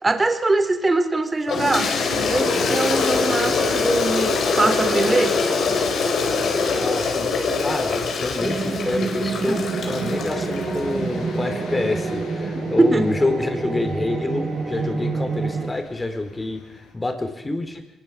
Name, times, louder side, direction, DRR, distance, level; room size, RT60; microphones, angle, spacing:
voice 1, 0.0-4.3 4.5-5.3 9.5-9.6 12.8-13.1, right 2 dB, 20° right, 8 dB, 2.9 m, -22 dB
Toilet flush, 1.5-10.8, left 4 dB, 60° left, 4.3 m, -23 dB
sound 1, 2.1-16.9, left 4 dB, 80° left, 7.3 m, -42 dB
voice 2, 6.7-7.3 7.6-17.8, left 2 dB, 20° left, 6 dB, 4.2 m, -27 dB
sound 2, 8.4-15.7, right 3 dB, 40° right, 2.6 m, -27 dB
23.0 x 20.5 x 7.6 m, 0.99 s
cardioid pair, 90°, 0 cm